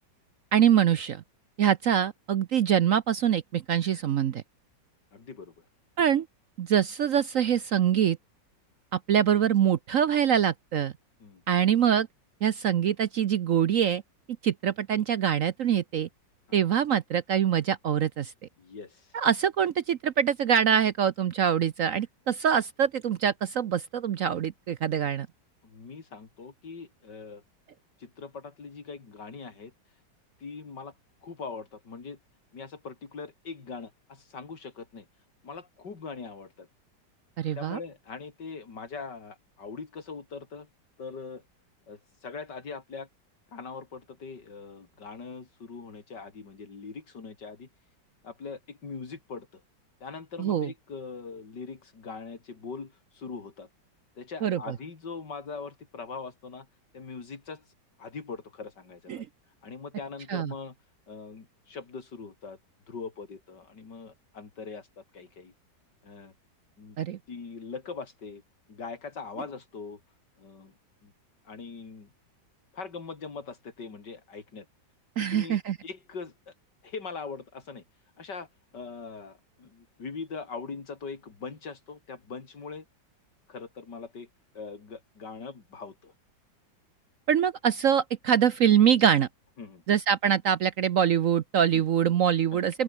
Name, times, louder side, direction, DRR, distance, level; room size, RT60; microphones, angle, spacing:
voice 1, 0.5-1.2 1.6-4.4 6.0-6.3 6.6-8.2 8.9-10.9 11.5-12.1 12.4-14.0 14.4-16.1 16.5-18.3 19.1-25.3 37.4-37.8 50.4-50.7 54.4-54.7 59.1-59.3 60.3-60.5 67.0-67.2 75.2-75.8 87.3-89.3 89.9-92.8, right 9 dB, 60° right, 0.9 m, -24 dB
voice 2, 5.1-5.5 11.2-11.4 16.5-16.6 18.6-19.2 25.6-27.4 28.0-29.7 30.4-30.9 31.2-32.2 32.5-35.1 35.4-36.7 37.6-40.7 41.0-41.4 41.9-43.1 43.5-47.7 48.2-49.6 50.0-53.7 54.2-56.7 56.9-57.6 58.0-59.3 59.6-60.8 61.1-62.6 62.9-65.5 66.0-66.3 66.8-67.0 67.3-68.4 68.7-70.0 70.4-70.7 71.0-71.1 71.5-72.1 72.7-74.7 75.2-76.5 76.8-77.8 78.2-78.5 78.7-82.9 83.5-84.3 84.5-86.1 89.6-89.8 91.7-91.8 92.5-92.8, left 4 dB, 65° left, 3.6 m, -41 dB
open air
omnidirectional pair, 2.0 m